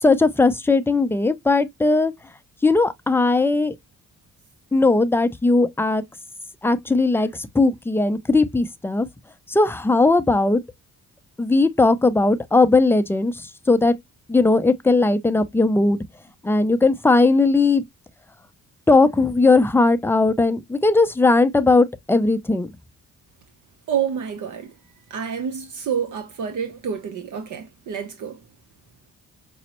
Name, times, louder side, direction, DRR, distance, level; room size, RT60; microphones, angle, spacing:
voice 1, 0.0-2.1 2.6-3.7 4.7-6.0 6.6-9.1 9.5-10.6 11.4-13.9 14.3-16.0 16.4-17.8 18.9-22.7, left 3 dB, 5° left, 0.4 m, -18 dB
voice 2, 23.9-24.7 25.1-28.4, right 8 dB, 65° right, 0.7 m, -28 dB
5.1 x 2.0 x 2.9 m
cardioid pair, 85°, 32 cm